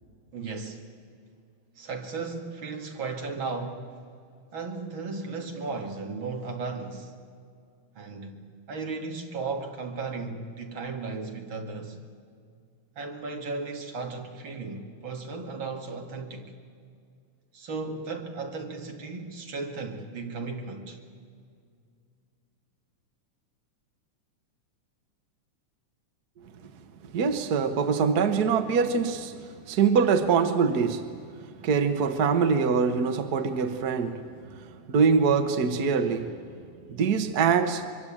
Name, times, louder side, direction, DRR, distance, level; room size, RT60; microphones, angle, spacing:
voice 1, 0.3-0.8 1.8-4.0 4.5-7.1 8.0-12.0 13.0-16.5 17.5-21.0, right 4 dB, 45° right, 2.6 m, -35 dB
voice 2, 27.1-29.4 29.7-31.0 31.6-34.2 34.9-36.3 36.9-37.9, right 5 dB, 65° right, 0.9 m, -23 dB
24.5 x 23.5 x 8.7 m
omnidirectional pair, 3.5 m